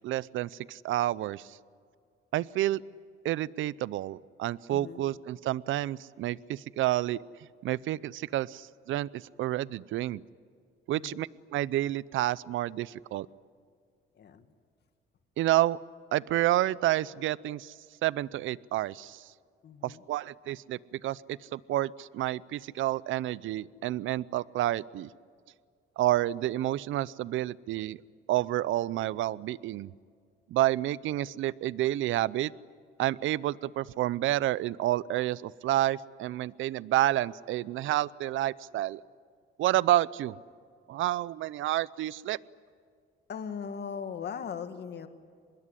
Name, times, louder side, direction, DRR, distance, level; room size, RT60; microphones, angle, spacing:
voice 1, 0.0-1.6 2.3-2.8 3.2-7.2 7.6-10.2 10.9-13.3 15.4-15.8 16.1-17.7 18.0-19.2 19.8-25.1 26.0-28.0 28.3-29.9 30.5-32.5 33.0-39.0 39.6-40.4 40.9-42.4, right 14 dB, 80° right, 21 dB, 0.6 m, -29 dB
voice 2, 4.7-5.0 10.9-11.2 14.1-14.5 19.6-20.0 43.3-45.1, left 7 dB, 55° left, 9 dB, 1.9 m, -39 dB
25.0 x 21.0 x 10.0 m, 2.1 s
cardioid pair, 90°, 20 cm